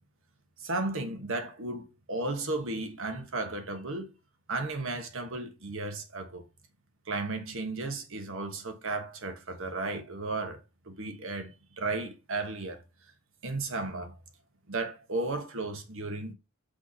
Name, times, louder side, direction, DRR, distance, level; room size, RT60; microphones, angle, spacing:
voice 1, 0.6-4.1 4.5-6.4 7.1-12.8 13.4-14.2 14.7-16.3, right 2 dB, 65° right, 1.4 m, -34 dB
6.4 x 3.5 x 5.5 m
head